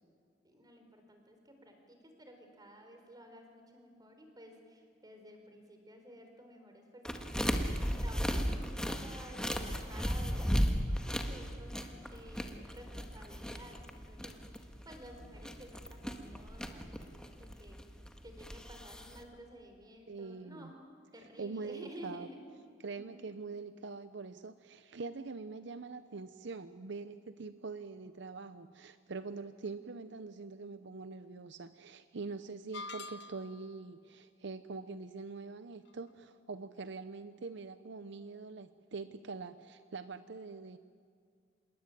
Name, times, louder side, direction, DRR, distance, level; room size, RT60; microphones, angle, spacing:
voice 1, 0.4-17.8 18.2-20.8 21.1-22.4 22.9-23.4, equal, 20° right, 5 dB, 4.2 m, -53 dB
sound 1, 7.0-19.2, equal, 5° left, 1.6 m, -36 dB
voice 2, 20.1-20.7 21.4-22.3 22.8-40.8, right 4 dB, 65° right, 12 dB, 0.8 m, -44 dB
sound 2, 32.7-33.7, left 3 dB, 65° left, 0.8 m, -45 dB
27.0 x 21.5 x 9.2 m, 2.2 s
head